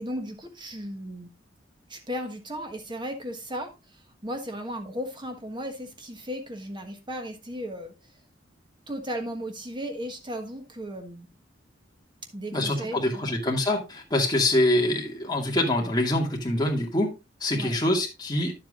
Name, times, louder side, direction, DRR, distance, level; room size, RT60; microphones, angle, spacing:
voice 1, 0.0-1.3 1.9-3.7 4.2-7.9 8.9-11.3 12.3-13.4 17.5-17.7, equal, 25° right, 1.4 m, -35 dB
voice 2, 12.5-17.1 17.4-18.5, left 1 dB, 25° left, 2.2 m, -25 dB
10.5 x 7.6 x 2.5 m
head